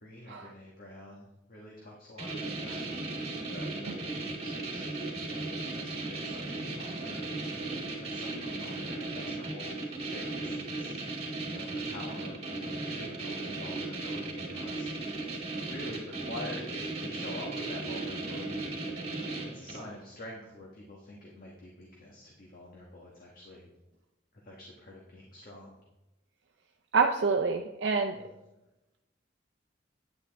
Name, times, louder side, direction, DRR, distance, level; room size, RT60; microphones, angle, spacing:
voice 1, 0.0-2.8 3.4-7.4 8.0-14.9 15.6-19.0 19.5-23.7 24.4-25.8 28.2-28.3, left 1 dB, 50° left, -2 dB, 1.3 m, -47 dB
sound 1, 2.2-19.9, right 2 dB, 30° right, 2.1 m, -36 dB
voice 2, 26.9-28.1, right 4 dB, 65° right, 2 dB, 0.6 m, -27 dB
9.6 x 8.3 x 3.5 m, 0.98 s
head